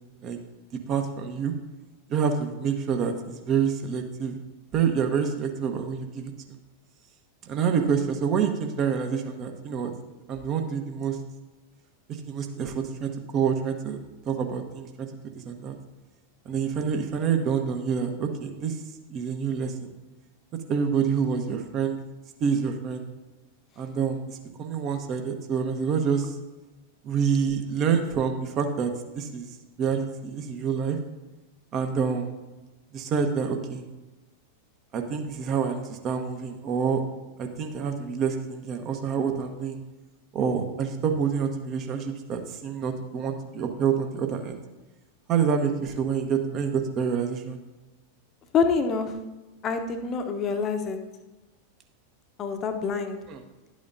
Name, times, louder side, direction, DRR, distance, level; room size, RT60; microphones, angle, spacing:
voice 1, 0.9-1.5 2.1-4.4 4.7-6.3 7.4-9.9 10.3-11.2 12.2-14.0 14.3-15.1 15.3-15.7 16.4-18.8 19.1-19.9 20.7-22.0 22.4-23.0 23.8-26.3 27.0-28.9 29.1-29.5 29.8-31.0 31.7-32.3 32.9-33.8 34.9-37.0 37.4-39.8 40.3-44.6 45.3-47.6 53.3-53.4, right 6 dB, 35° right, 5 dB, 1.1 m, -27 dB
voice 2, 48.5-49.1 49.6-51.0 52.4-53.2, left 5 dB, 30° left, 6 dB, 0.9 m, -26 dB
11.5 x 8.5 x 2.7 m, 1.1 s
figure-of-eight pair, 90°, 0 cm